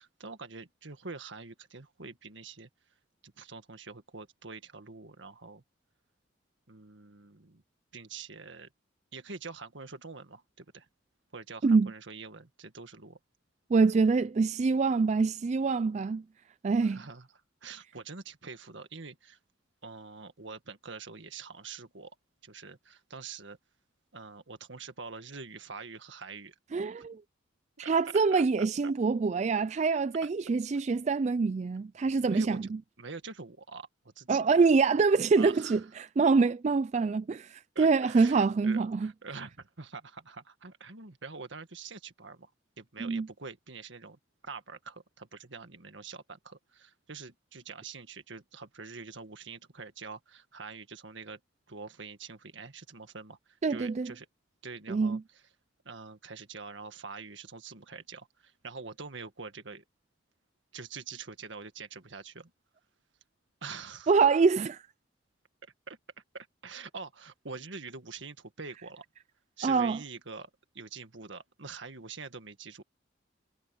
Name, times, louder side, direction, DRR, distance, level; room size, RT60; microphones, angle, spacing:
voice 1, 0.0-2.7 3.2-5.6 6.7-7.6 7.9-8.7 9.1-10.9 11.3-13.2 16.8-17.3 17.6-19.4 19.8-22.1 22.4-23.6 24.1-26.5 27.0-27.1 27.8-27.9 28.3-28.9 30.2-30.3 32.3-32.7 33.0-34.4 35.4-35.8 37.7-42.5 42.8-51.4 51.7-54.3 54.6-55.4 55.8-59.8 60.7-62.5 63.6-64.1 65.9-66.0 66.3-69.0 69.6-72.8, right 4 dB, 70° right, 1.8 m, -45 dB
voice 2, 13.7-16.2 16.6-17.0 26.7-27.2 27.8-32.6 34.3-39.1 43.0-43.3 53.6-54.1 54.9-55.2 64.1-64.8 69.6-70.0, right 4 dB, 35° right, 0.3 m, -25 dB
head